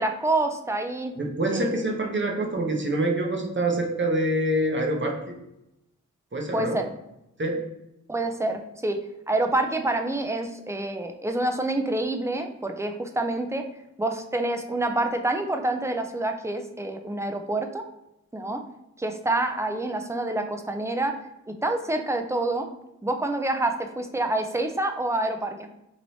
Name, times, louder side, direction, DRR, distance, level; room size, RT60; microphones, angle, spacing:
voice 1, 0.0-1.1 1.5-1.8 6.5-6.8 8.1-9.0 9.3-13.6 14.0-17.8 18.3-18.6 19.0-21.1 21.6-22.7 23.0-25.7, right 2 dB, 10° right, 5 dB, 0.4 m, -27 dB
voice 2, 1.2-5.4 6.3-6.8 7.4-7.6, right 1 dB, 40° right, 1 dB, 0.7 m, -26 dB
3.1 x 2.9 x 2.7 m, 0.87 s
wide cardioid pair, 50°, 31 cm